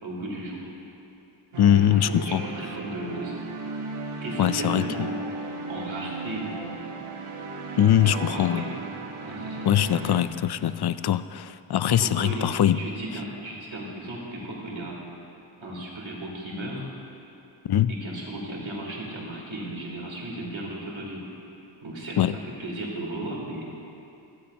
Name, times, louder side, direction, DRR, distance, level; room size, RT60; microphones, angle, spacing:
voice 1, 0.0-0.7 1.7-3.4 4.2-6.9 8.0-8.8 9.2-9.6 10.0-10.1 11.9-15.0 15.6-16.8 17.9-21.3 21.8-23.8, right 1 dB, 65° right, -3 dB, 3.3 m, -35 dB
sound 1, 1.5-10.2, right 3 dB, 85° right, 1.2 m, -35 dB
voice 2, 1.6-2.4 4.4-5.1 7.8-8.7 9.6-12.8 17.6-17.9 22.2-22.3, left 11 dB, 55° left, 14 dB, 0.5 m, -22 dB
16.0 x 14.5 x 2.8 m, 2.7 s
cardioid pair, 55°, 49 cm